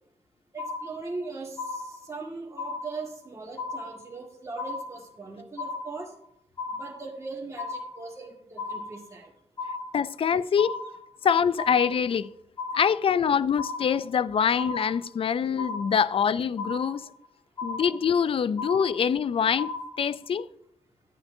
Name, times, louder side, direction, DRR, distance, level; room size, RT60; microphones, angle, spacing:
voice 1, 0.5-6.1 6.7-9.3, right 3 dB, 25° right, 1.9 m, -39 dB
sound 1, 0.6-1.2 1.6-2.2 2.6-3.2 3.6-4.2 4.6-5.2 5.6-6.2 6.6-7.2 7.6-8.2 8.6-9.2 9.6-10.2 10.6-11.2 11.6-12.2 12.6-13.2 13.6-14.2 14.6-15.2 15.6-16.2 16.6-17.2 17.6-18.2 18.6-19.2 19.6-20.2, left 3 dB, 35° left, 1.6 m, -36 dB
voice 2, 9.9-10.8 11.2-12.3 12.7-17.1 17.6-19.7 20.0-20.5, left 7 dB, 55° left, 0.4 m, -24 dB
10.5 x 9.3 x 2.7 m
cardioid pair, 80°, 11 cm